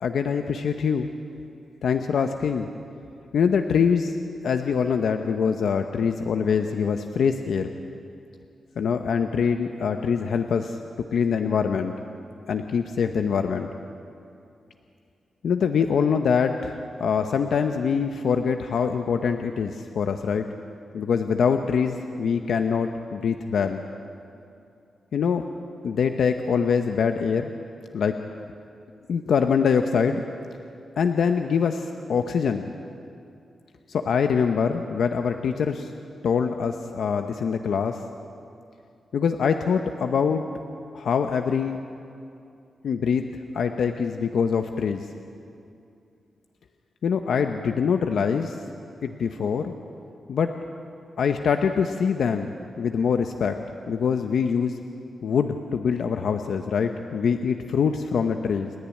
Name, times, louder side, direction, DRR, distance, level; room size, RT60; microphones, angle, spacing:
voice 1, 0.0-1.1 1.8-2.7 3.3-4.1 4.4-7.7 8.8-10.8 11.1-11.9 12.5-13.7 15.4-20.5 20.9-23.8 25.1-25.5 25.8-27.5 27.9-28.2 29.1-30.2 31.0-32.7 33.9-35.9 36.2-38.0 39.1-40.4 40.9-41.8 42.8-43.2 43.5-45.1 47.0-48.6 49.0-49.7 50.3-50.5 51.2-53.6 53.9-54.8 55.2-58.7, left 6 dB, 70° left, 6 dB, 0.8 m, -24 dB
29.5 x 10.5 x 9.8 m, 2.5 s
wide cardioid pair, 170°, 0 cm